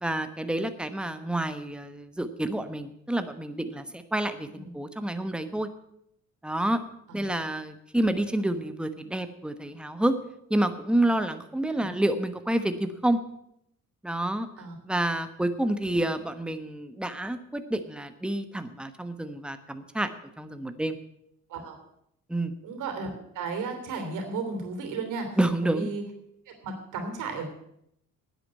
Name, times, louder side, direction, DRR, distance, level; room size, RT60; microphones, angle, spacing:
voice 1, 0.0-5.7 6.4-6.8 7.1-10.2 10.5-13.2 14.0-14.5 14.8-20.1 20.4-21.0 22.3-22.5 25.4-25.9, right 1 dB, 5° right, 9 dB, 1.1 m, -28 dB
voice 2, 22.6-23.1 23.3-26.0 26.5-27.5, right 4 dB, 90° right, 5 dB, 3.1 m, -34 dB
9.9 x 8.2 x 8.8 m, 0.77 s
cardioid pair, 90°, 30 cm